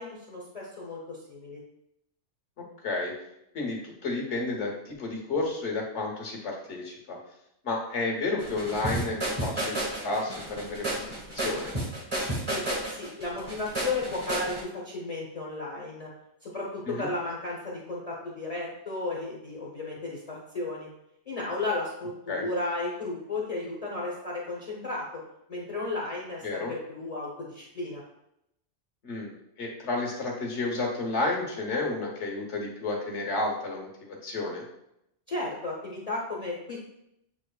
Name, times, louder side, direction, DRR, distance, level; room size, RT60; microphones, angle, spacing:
voice 1, 0.0-1.6 12.5-16.1 16.4-20.9 21.3-25.2 25.5-28.0 35.3-36.8, left 2 dB, 35° left, -4 dB, 0.8 m, -34 dB
voice 2, 3.5-7.2 7.6-11.8 16.9-17.1 22.3-22.5 26.4-26.7 29.0-29.3 29.6-34.6, left 2 dB, 70° left, -1 dB, 1.4 m, -31 dB
sound 1, 8.4-14.6, right 1 dB, 25° right, 1.4 m, -32 dB
7.4 x 3.0 x 2.3 m, 0.80 s
omnidirectional pair, 1.2 m